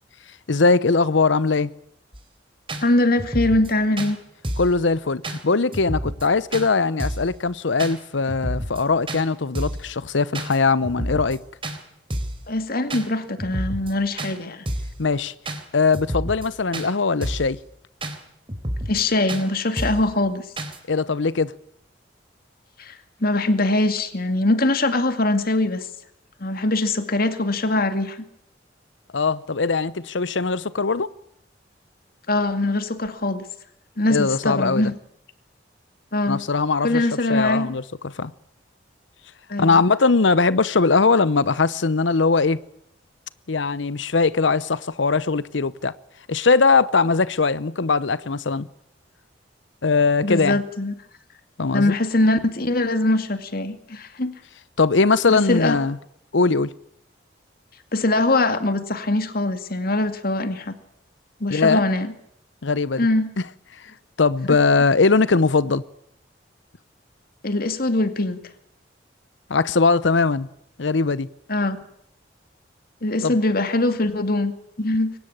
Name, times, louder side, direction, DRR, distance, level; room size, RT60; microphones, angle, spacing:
voice 1, 0.5-1.7 4.6-11.4 15.0-15.3 15.7-17.6 20.9-21.5 29.1-31.1 34.1-34.9 36.3-38.3 39.6-42.6 43.5-45.9 46.3-48.7 49.8-50.6 51.6-51.9 54.8-56.0 56.3-56.7 61.5-61.8 62.6-63.1 64.2-65.8 69.5-70.5 70.8-71.3 73.2-73.4, left 4 dB, 85° left, 0.8 m, -20 dB
sound 1, 2.1-2.2 2.7-2.8 3.2-3.7 4.0-4.1 4.4-4.8 5.2-5.4 5.7-6.3 6.5-6.7 7.0-7.3 7.8-7.9 8.3-8.8 9.1-9.2 9.6-9.9 10.3-10.6 10.8-11.4 11.6-11.8 12.1-12.4 12.9-13.1 13.4-13.9 14.2-14.3 14.7-15.0 15.5-15.6 15.9-16.5 16.7-16.9 17.2-17.5 18.0-18.2 18.5-19.0 19.3-19.4 19.8-20.1 20.6-20.8, right 1 dB, 30° right, 3.6 m, -29 dB
voice 2, 2.8-4.2 12.5-14.6 18.9-20.5 22.8-25.9 26.4-28.2 32.3-33.4 34.0-34.9 36.1-36.4 36.8-37.7 39.5-39.8 50.2-50.9 51.7-54.3 55.3-55.8 57.9-60.8 61.4-62.1 63.0-63.3 64.5-64.6 67.4-68.4 71.5-71.8 73.0-74.5 74.8-75.1, left 2 dB, 55° left, 2.3 m, -22 dB
23.5 x 19.0 x 8.8 m
head